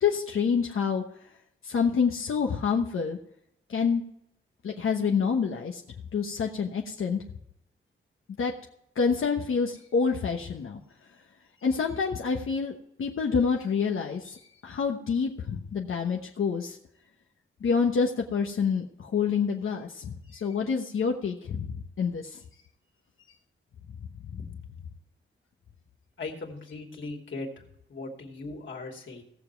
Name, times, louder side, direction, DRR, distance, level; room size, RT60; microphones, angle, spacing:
voice 1, 0.0-1.0 1.6-3.2 3.7-4.0 4.6-5.8 6.1-7.2 8.4-8.5 8.9-10.8 11.6-12.7 13.0-16.8 17.6-22.4 24.3-24.4, left 6 dB, 80° left, 1 dB, 1.2 m, -27 dB
voice 2, 26.2-27.5 27.9-29.2, left 3 dB, 65° left, 0 dB, 2.7 m, -38 dB
17.5 x 7.1 x 4.6 m, 0.77 s
wide cardioid pair, 145°, 21 cm